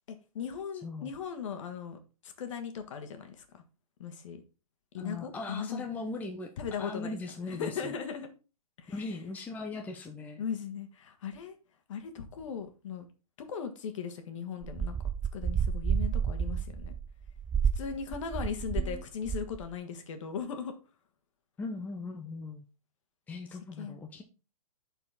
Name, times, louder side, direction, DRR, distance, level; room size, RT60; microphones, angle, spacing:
voice 1, 0.1-3.6 4.0-4.4 4.9-5.8 6.6-8.3 8.8-8.9 10.4-11.5 11.9-13.0 13.5-14.9 15.3-16.9 17.7-20.7 23.8-24.0, left 7 dB, 55° left, 1.7 m, -38 dB
voice 2, 0.8-1.1 5.0-6.5 6.8-7.9 8.9-10.4 18.4-19.0 21.6-22.6 23.3-24.2, left 3 dB, 10° left, 0.7 m, -39 dB
sound 1, 14.6-19.0 19.2-19.6, right 7 dB, 10° right, 0.3 m, -30 dB
11.0 x 4.5 x 3.7 m
hypercardioid pair, 140°, 19 cm